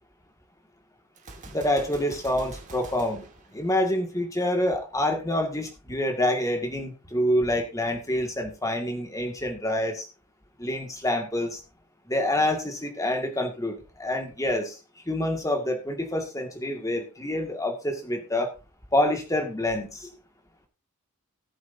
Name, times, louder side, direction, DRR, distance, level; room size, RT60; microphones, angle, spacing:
Gunshot gunfire, 1.2-4.3, right 2 dB, 35° right, 2.1 m, -46 dB
voice 1, 1.5-3.3 3.5-10.1 10.6-11.6 12.1-14.8 15.1-18.5 18.9-20.1, left 1 dB, 15° left, 4 dB, 2.0 m, -27 dB
18.5 x 7.9 x 2.7 m, 0.30 s
head